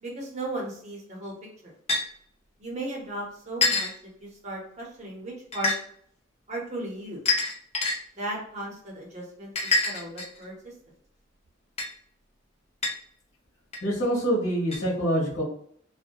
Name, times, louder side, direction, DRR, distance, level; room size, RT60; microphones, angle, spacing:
voice 1, 0.0-1.3 1.6-1.7 2.6-3.9 4.2-5.7 6.5-7.2 8.1-10.7, right 1 dB, 35° right, -2 dB, 0.7 m, -36 dB
sound 1, 1.9-2.0 3.6-3.9 5.5-5.8 7.3-8.0 9.6-10.4 11.8-11.9 12.8-12.9 13.7-13.8 14.7-14.8, left 3 dB, 30° left, 0.5 m, -25 dB
voice 2, 13.8-15.4, equal, 65° left, -3 dB, 1.2 m, -25 dB
2.6 x 2.1 x 2.2 m, 0.62 s
head